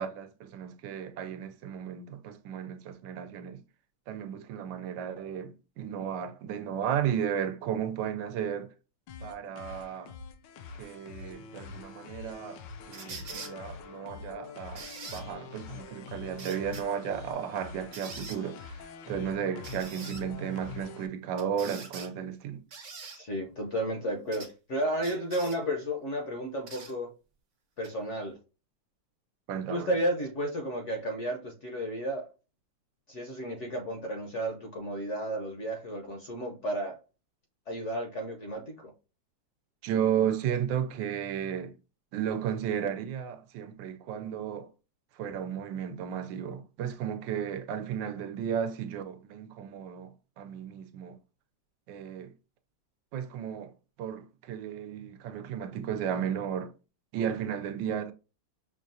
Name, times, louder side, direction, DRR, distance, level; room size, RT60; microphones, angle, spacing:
voice 1, 0.0-3.6 4.1-8.7 9.2-10.1 10.8-12.6 12.9-14.9 15.1-22.6 29.5-29.9 39.8-41.7 42.1-44.7 45.2-51.2 51.9-52.3 53.1-53.7 54.0-56.7 57.1-58.1, right 8 dB, 80° right, 1.3 m, -34 dB
sound 1, 9.1-21.1, left 5 dB, 75° left, 1.2 m, -45 dB
sound 2, 12.9-13.5 14.8-15.2 16.4-16.8 17.9-18.4 19.6-20.2 21.4-22.1 22.7-23.2 24.3-24.5 25.0-25.6 26.7-26.9 27.8-27.9, right 4 dB, 55° right, 1.3 m, -43 dB
voice 2, 23.1-27.1 27.8-28.4 29.7-32.3 33.1-37.0 37.7-38.9, right 1 dB, 55° left, 0.9 m, -33 dB
6.1 x 2.3 x 2.6 m
omnidirectional pair, 2.0 m